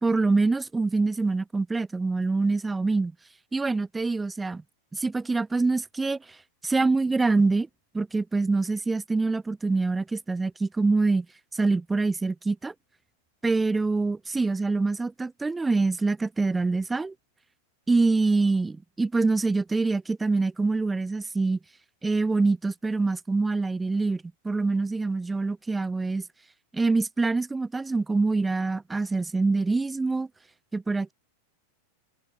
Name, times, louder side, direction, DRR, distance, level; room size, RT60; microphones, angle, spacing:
voice 1, 0.0-3.1 3.5-4.6 4.9-6.2 6.6-7.7 7.9-11.3 11.5-12.7 13.4-17.1 17.9-21.6 22.0-26.2 26.7-30.3 30.7-31.1, right 3 dB, 10° right, 1.5 m, -25 dB
figure-of-eight pair, 90°, 0 cm